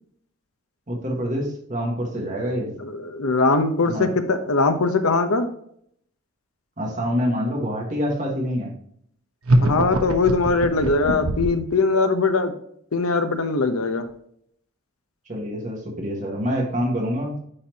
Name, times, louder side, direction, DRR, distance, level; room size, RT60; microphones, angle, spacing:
voice 1, 0.9-2.7 3.9-4.1 6.8-8.7 15.3-17.4, equal, 35° right, -1 dB, 1.6 m, -26 dB
voice 2, 2.8-5.5 9.6-12.5 12.9-14.0, left 3 dB, 85° left, 8 dB, 0.9 m, -21 dB
sound 1, 9.4-11.7, right 1 dB, 90° right, 1.0 m, -22 dB
9.8 x 4.3 x 2.9 m, 0.67 s
head